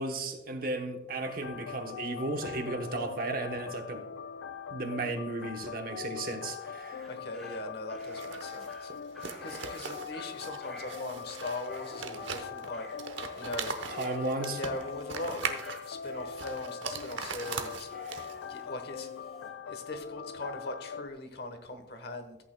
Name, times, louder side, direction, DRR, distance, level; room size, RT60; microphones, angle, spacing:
voice 1, 0.0-4.0 4.7-7.0 14.0-14.6, right 2 dB, 50° right, 4 dB, 1.0 m, -34 dB
sound 1, 1.2-21.1, left 7 dB, 90° left, 0.3 m, -42 dB
Dog, 6.5-19.5, right 1 dB, ahead, 2.3 m, -51 dB
voice 2, 7.0-8.9 9.4-12.9 13.4-13.8 14.5-17.9 18.5-19.3 19.6-22.4, left 2 dB, 55° left, 7 dB, 1.1 m, -40 dB
sound 2, 8.0-18.5, right 5 dB, 80° right, 0.9 m, -40 dB
13.5 x 8.6 x 2.2 m, 1.0 s
head